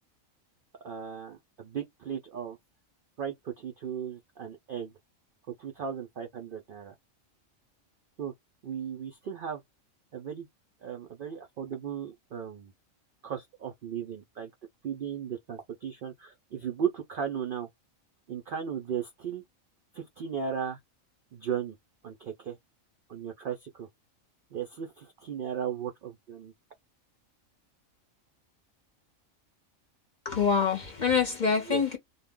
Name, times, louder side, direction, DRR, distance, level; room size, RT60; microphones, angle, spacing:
voice 1, 0.8-2.6 3.2-4.9 5.6-6.9 8.2-8.3 8.6-9.6 10.1-10.5 10.8-12.7 13.2-14.5 14.8-17.7 18.3-19.4 19.9-20.8 21.3-21.8 22.0-22.6 23.1-23.9 24.5-26.5 31.7-31.8, right 8 dB, 65° right, 0.5 m, -36 dB
voice 2, 30.2-32.0, left 6 dB, 45° left, 0.7 m, -25 dB
2.2 x 2.1 x 3.5 m
omnidirectional pair, 1.4 m